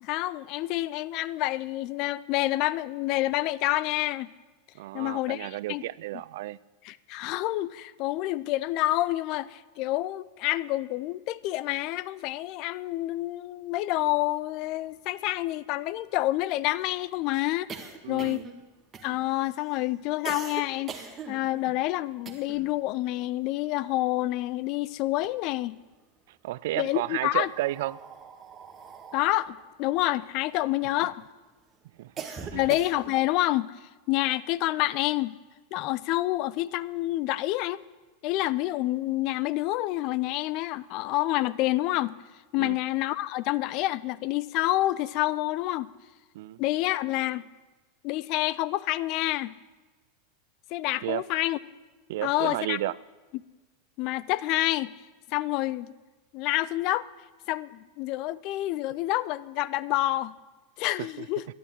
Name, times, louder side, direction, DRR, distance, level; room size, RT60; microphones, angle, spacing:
voice 1, 0.0-4.3 4.9-5.8 6.8-17.7 18.1-18.4 19.0-25.8 26.8-27.5 29.1-31.2 32.2-33.7 34.1-35.4 35.7-37.8 38.2-42.2 42.5-45.9 46.6-47.5 48.0-49.5 50.7-51.6 52.2-52.8 54.0-54.9 55.3-55.9 56.3-57.1 57.5-60.3 60.8-61.5, left 17 dB, 45° left, 19 dB, 0.5 m, -28 dB
voice 2, 4.8-6.6 18.0-18.5 26.4-28.0 32.0-32.1 32.4-32.7 42.6-42.8 46.3-46.6 51.0-51.2 52.1-52.9 61.0-61.3, right 16 dB, 60° right, 20 dB, 0.4 m, -32 dB
sound 1, 14.6-14.7 14.9-15.0 15.3-22.8 23.1-24.6 25.0-25.9 26.7-31.1 31.6-33.3, right 6 dB, 25° right, 1.6 m, -43 dB
12.5 x 11.0 x 7.7 m, 1.3 s
figure-of-eight pair, 90°, 0 cm